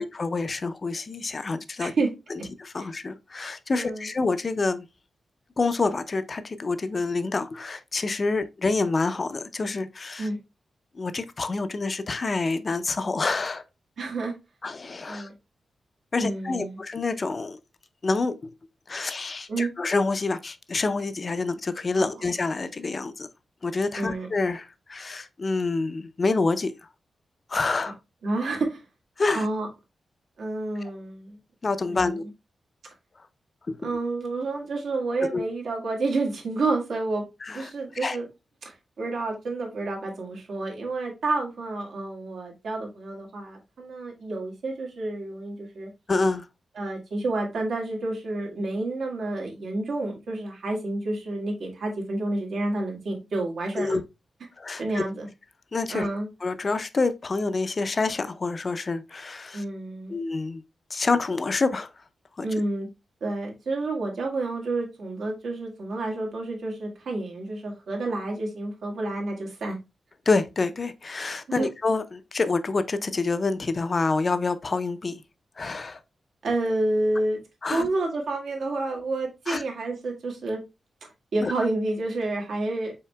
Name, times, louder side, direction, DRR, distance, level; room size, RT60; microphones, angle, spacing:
voice 1, 0.0-1.9 2.3-4.9 5.6-10.3 10.9-13.6 14.6-15.3 16.1-17.6 18.0-18.5 18.9-23.3 23.6-26.7 27.5-27.9 29.2-29.5 31.6-32.3 33.7-33.8 35.3-35.5 37.4-37.7 38.0-38.2 46.1-46.5 53.8-54.0 54.6-55.0 55.7-56.1 56.4-59.6 60.1-60.6 60.9-61.9 62.4-62.5 70.3-75.2 75.6-76.0 77.6-77.9 79.5-79.6 81.4-81.5, left 3 dB, 30° left, 0.4 m, -27 dB
voice 2, 3.7-4.1 10.2-10.4 14.0-14.3 15.1-15.3 16.2-16.8 19.5-19.7 22.0-22.3 24.0-24.3 27.9-28.0 28.2-28.8 29.3-29.7 30.4-31.4 31.9-32.1 33.8-37.2 37.5-38.3 38.6-45.9 46.7-54.0 54.8-55.3 55.9-56.3 59.5-60.2 62.4-62.9 63.2-69.8 71.5-71.7 76.4-77.4 77.7-80.6 81.3-82.9, right 2 dB, 75° right, 1.6 m, -29 dB
5.6 x 4.1 x 2.2 m
wide cardioid pair, 165°, 0 cm